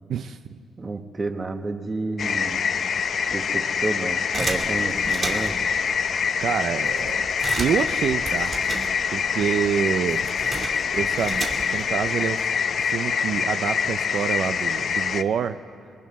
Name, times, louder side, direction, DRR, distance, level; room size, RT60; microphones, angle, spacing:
voice 1, 0.1-0.6 6.4-7.2 7.6-8.8 9.1-10.2 10.9-12.4 12.8-15.6, right 8 dB, 60° right, 10 dB, 0.5 m, -27 dB
voice 2, 0.8-2.6 3.3-5.5, right 3 dB, 20° right, 7 dB, 1.0 m, -30 dB
sound 1, 2.2-15.2, left 6 dB, 45° left, 0.5 m, -25 dB
sound 2, 4.3-5.7 6.3-6.4 6.6-9.3 9.6-11.9, right 3 dB, 35° right, 2.8 m, -33 dB
27.0 x 22.5 x 4.2 m, 2.5 s
cardioid pair, 155°, 0 cm